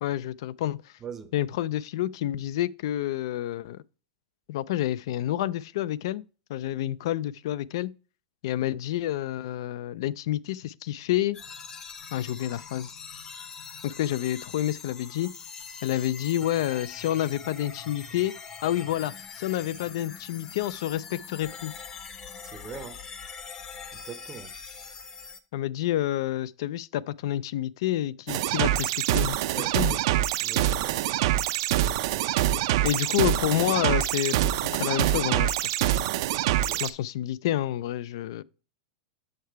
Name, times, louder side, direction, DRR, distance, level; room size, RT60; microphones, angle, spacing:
voice 1, 0.0-0.8 1.3-3.8 4.5-6.2 6.5-7.9 8.4-11.4 12.1-12.9 13.8-15.3 15.8-18.3 18.6-21.7 25.5-29.9 32.8-35.8 36.8-38.4, left 13 dB, 60° left, 0.3 m, -29 dB
voice 2, 1.0-1.3 22.4-23.0 23.9-24.5 29.5-31.0 32.8-33.0 36.5-36.8, right 6 dB, 15° right, 0.6 m, -42 dB
sound 1, 11.3-25.4, left 6 dB, 25° left, 0.8 m, -43 dB
sound 2, 28.3-36.9, right 13 dB, 55° right, 0.5 m, -25 dB
6.6 x 5.6 x 4.6 m
supercardioid pair, 155°, 3 cm